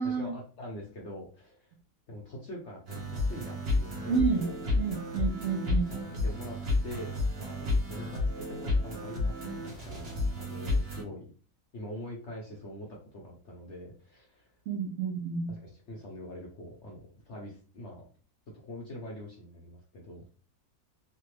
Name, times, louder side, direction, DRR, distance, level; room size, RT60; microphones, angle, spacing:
voice 1, 0.0-1.7 2.1-4.6 6.1-11.2 11.7-14.6 15.5-18.0 18.6-20.2, equal, 60° left, -2 dB, 0.7 m, -44 dB
sound 1, 2.9-11.0, left 2 dB, 45° right, 0.9 m, -31 dB
voice 2, 4.1-4.5 4.7-5.9 14.7-15.5, right 5 dB, 75° right, 1 dB, 0.7 m, -30 dB
3.3 x 2.2 x 3.1 m, 0.40 s
omnidirectional pair, 1.9 m